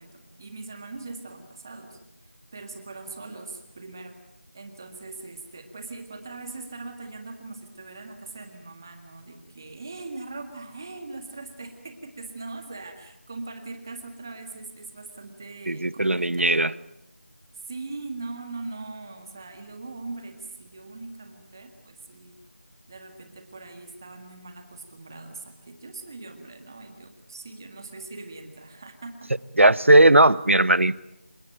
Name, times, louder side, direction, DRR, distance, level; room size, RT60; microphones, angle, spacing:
voice 1, 0.0-4.2 4.5-16.7 17.7-22.4 22.9-29.3, right 3 dB, 15° right, 6 dB, 1.9 m, -41 dB
voice 2, 15.7-16.7 29.6-31.0, right 1 dB, 80° right, 19 dB, 1.0 m, -17 dB
28.0 x 17.5 x 9.0 m, 0.86 s
figure-of-eight pair, 175°, 7 cm